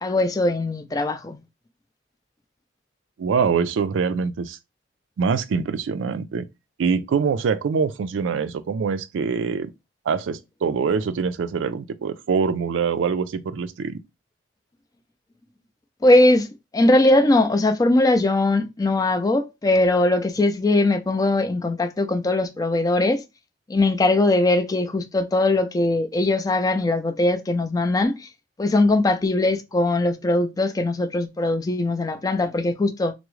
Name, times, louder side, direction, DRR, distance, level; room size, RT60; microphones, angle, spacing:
voice 1, 0.0-1.4 16.0-16.5 16.7-23.2 23.7-28.3 28.6-33.1, left 2 dB, 20° left, 0.3 m, -20 dB
voice 2, 3.2-4.6 5.2-6.5 6.8-9.7 10.1-14.0, right 5 dB, 90° right, 0.4 m, -24 dB
3.5 x 2.0 x 3.0 m
head